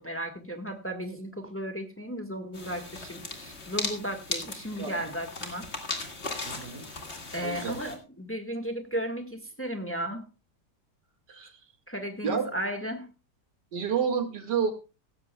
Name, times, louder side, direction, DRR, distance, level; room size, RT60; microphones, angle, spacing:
voice 1, 0.0-5.7 7.3-10.2 11.9-13.1, equal, 10° left, 5 dB, 1.4 m, -35 dB
sound 1, 2.5-8.0, left 3 dB, 40° left, 2.3 m, -37 dB
voice 2, 6.4-6.8 7.4-7.8 11.3-11.5 12.2-12.4 13.7-14.7, right 6 dB, 85° right, 6 dB, 2.6 m, -29 dB
16.5 x 14.0 x 2.3 m, 0.32 s
omnidirectional pair, 1.8 m